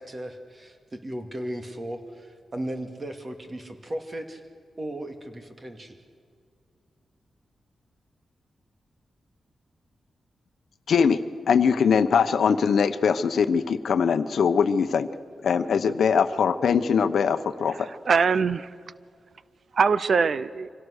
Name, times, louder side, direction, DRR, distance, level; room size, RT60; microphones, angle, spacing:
voice 1, 0.0-4.4 4.8-6.0, right 1 dB, 30° right, 6 dB, 2.2 m, -36 dB
voice 2, 10.9-11.2 11.5-15.1 15.4-17.8, left 6 dB, 75° left, 10 dB, 0.9 m, -22 dB
voice 3, 17.7-18.7 19.7-20.7, right 5 dB, 60° right, 16 dB, 0.6 m, -23 dB
25.5 x 17.5 x 6.5 m, 2.2 s
wide cardioid pair, 100°, 0 cm